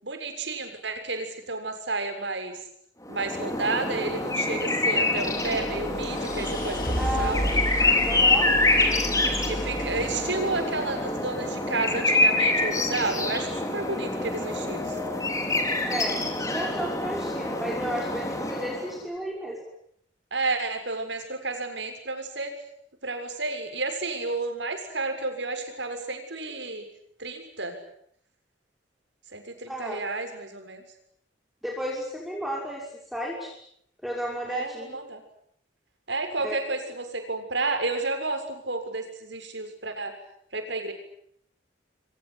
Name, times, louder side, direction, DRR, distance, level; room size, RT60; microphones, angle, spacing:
voice 1, 0.0-2.6 3.1-7.4 9.4-15.0 20.3-22.5 23.0-26.9 27.2-27.8 29.3-30.8 34.4-35.2 36.1-40.1 40.5-40.9, right 3 dB, 70° right, 6 dB, 6.9 m, -31 dB
sound 1, 3.1-19.0, left 2 dB, 20° left, 5.0 m, -26 dB
sound 2, 5.2-11.3, equal, 50° left, 5.5 m, -33 dB
voice 2, 6.9-7.6 8.0-8.5 15.8-16.2 16.5-19.6 29.7-30.0 31.6-33.5 34.0-35.0 36.4-36.6, right 1 dB, ahead, -2 dB, 6.0 m, -33 dB
30.0 x 23.5 x 8.4 m, 0.70 s
head